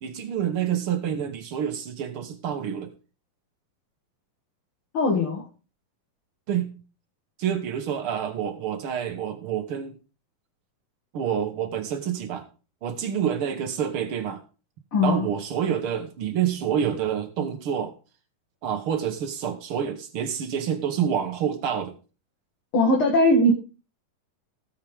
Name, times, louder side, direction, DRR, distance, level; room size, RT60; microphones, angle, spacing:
voice 1, 0.0-2.9 6.5-6.7 7.4-10.0 11.1-12.4 12.8-14.4 15.0-17.9 18.6-21.9, right 8 dB, 75° right, 6 dB, 1.2 m, -28 dB
voice 2, 4.9-5.5 14.9-15.2 22.7-23.5, left 1 dB, 40° left, -1 dB, 2.4 m, -20 dB
18.0 x 6.6 x 3.5 m, 0.33 s
omnidirectional pair, 4.4 m